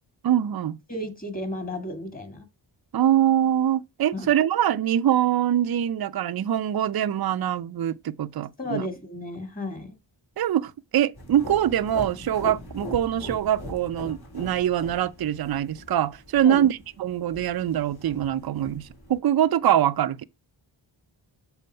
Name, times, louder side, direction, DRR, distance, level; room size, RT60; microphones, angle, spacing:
voice 1, 0.2-0.8 2.9-8.9 10.4-20.2, right 10 dB, 55° right, 0.5 m, -24 dB
voice 2, 0.9-2.4 4.1-4.3 8.6-10.0 16.4-16.7, left 1 dB, 20° left, 1.9 m, -33 dB
sound 1, 11.1-19.2, left 1 dB, 50° left, 2.7 m, -41 dB
6.9 x 4.3 x 5.5 m
wide cardioid pair, 75°, 46 cm